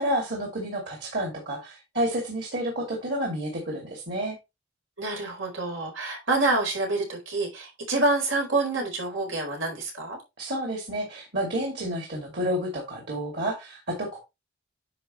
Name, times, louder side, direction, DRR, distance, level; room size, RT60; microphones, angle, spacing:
voice 1, 0.0-4.4 10.4-14.2, equal, 55° right, 0 dB, 2.7 m, -30 dB
voice 2, 5.0-10.2, right 2 dB, 90° right, 1 dB, 4.5 m, -27 dB
10.0 x 5.7 x 3.2 m, 0.24 s
head